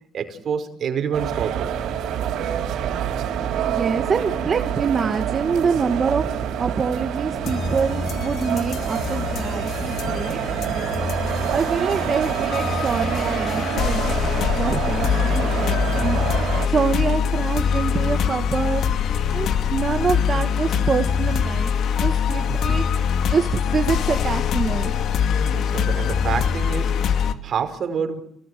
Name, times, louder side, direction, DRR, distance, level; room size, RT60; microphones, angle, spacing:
voice 1, 0.1-1.7 22.5-22.8 25.5-28.2, right 7 dB, 60° right, 5.3 m, -28 dB
sound 1, 1.1-16.7, right 9 dB, 85° right, 5.0 m, -27 dB
voice 2, 3.7-6.3 6.6-10.8 11.2-16.2 16.6-18.9 19.3-22.8 23.3-24.9, right 5 dB, 45° right, 2.1 m, -25 dB
sound 2, 7.4-27.3, left 7 dB, 75° left, 2.4 m, -23 dB
29.5 x 19.0 x 9.5 m
cardioid pair, 90°, 0 cm